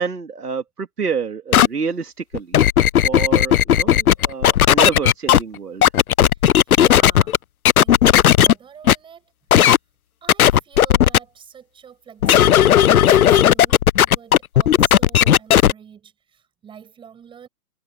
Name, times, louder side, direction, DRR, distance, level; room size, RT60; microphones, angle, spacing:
voice 1, 0.0-2.6 3.0-5.8, right 5 dB, 80° right, 2.8 m, -27 dB
sound 1, 1.5-1.7 2.3-5.4 5.8-7.4 7.7-8.5 8.9-9.0 9.5-9.8 10.3-11.2 12.2-15.7, left 10 dB, 70° left, 0.6 m, -13 dB
voice 2, 6.3-7.4 7.8-9.3 10.2-17.5, right 8 dB, 10° right, 6.0 m, -45 dB
hypercardioid pair, 145°, 46 cm